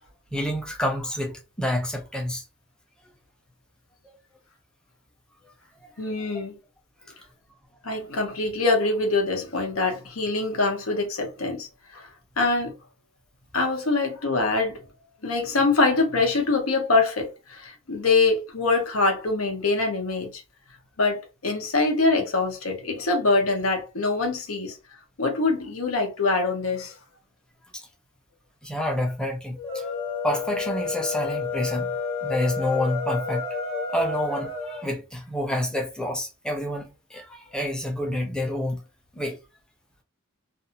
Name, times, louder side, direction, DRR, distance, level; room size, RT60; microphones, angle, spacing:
voice 1, 0.3-2.4 5.8-5.9 27.7-27.9 28.6-29.8 30.2-31.9 32.2-33.4 33.9-38.8 39.1-39.4, left 1 dB, 5° left, 0.7 m, -28 dB
voice 2, 6.0-6.6 7.8-12.1 12.4-12.7 13.5-14.8 15.2-20.4 21.0-24.8 25.2-26.9, left 3 dB, 75° left, 0.9 m, -24 dB
sound 1, 29.5-34.8, left 5 dB, 25° left, 1.0 m, -30 dB
2.6 x 2.4 x 2.7 m
head